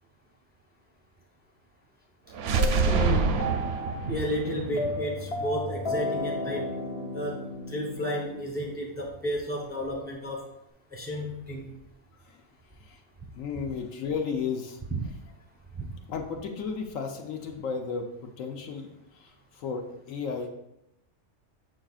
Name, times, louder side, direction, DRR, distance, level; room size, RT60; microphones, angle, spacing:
sound 1, 2.3-6.2, right 4 dB, 65° right, 0.7 m, -27 dB
sound 2, 2.6-8.7, left 1 dB, 55° left, 1.0 m, -34 dB
voice 1, 2.8-3.5 4.1-6.7 7.1-7.4 7.7-10.5 10.9-11.7 14.9-15.1 15.8-15.9, equal, 10° right, -1 dB, 0.6 m, -32 dB
voice 2, 13.3-14.8 16.1-20.5, left 5 dB, 85° left, 3 dB, 1.2 m, -34 dB
6.4 x 6.3 x 2.4 m, 0.85 s
omnidirectional pair, 1.3 m